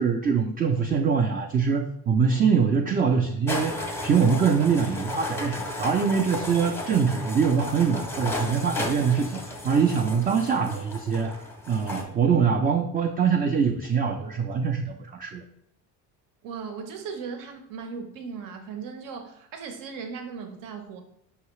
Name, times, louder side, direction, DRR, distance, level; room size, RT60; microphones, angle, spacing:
voice 1, 0.0-3.8 4.0-11.3 11.7-15.4, right 6 dB, 25° right, 4 dB, 0.3 m, -23 dB
sound 1, 3.5-12.0, left 2 dB, 5° left, 0.7 m, -34 dB
voice 2, 16.4-21.0, right 5 dB, 65° right, 5 dB, 0.8 m, -37 dB
5.5 x 2.8 x 3.1 m, 0.73 s
cardioid pair, 110°, 36 cm